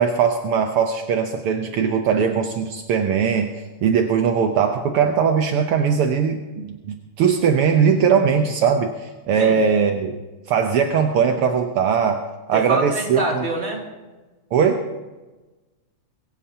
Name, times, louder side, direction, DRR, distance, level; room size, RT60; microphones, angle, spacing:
voice 1, 0.0-3.5 3.8-10.2 10.5-13.4 14.5-14.8, right 6 dB, 75° right, 5 dB, 1.3 m, -20 dB
voice 2, 12.5-13.8, right 2 dB, 20° right, -1 dB, 2.4 m, -26 dB
22.5 x 16.0 x 2.8 m, 1.2 s
omnidirectional pair, 3.5 m